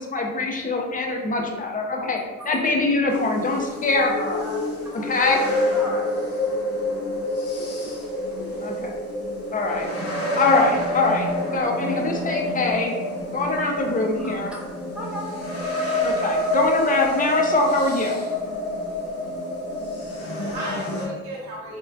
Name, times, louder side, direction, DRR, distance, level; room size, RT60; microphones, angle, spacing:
voice 1, 0.1-2.2 2.4-4.4 4.9-5.4 8.6-9.0 9.5-9.9 10.4-11.3 11.5-12.9 13.3-14.5 16.0-18.3, left 3 dB, 30° left, 1 dB, 0.5 m, -23 dB
sound 1, 3.1-21.1, left 1 dB, 50° left, 0.9 m, -27 dB
voice 2, 4.4-5.0 5.7-6.3 6.9-8.0 8.3-8.7 14.2-14.6 14.9-15.3, left 1 dB, 5° right, -4 dB, 0.8 m, -38 dB
voice 3, 19.7-21.8, right 1 dB, 65° right, -5 dB, 0.9 m, -35 dB
3.7 x 2.2 x 2.3 m, 1.2 s
cardioid pair, 90°, 30 cm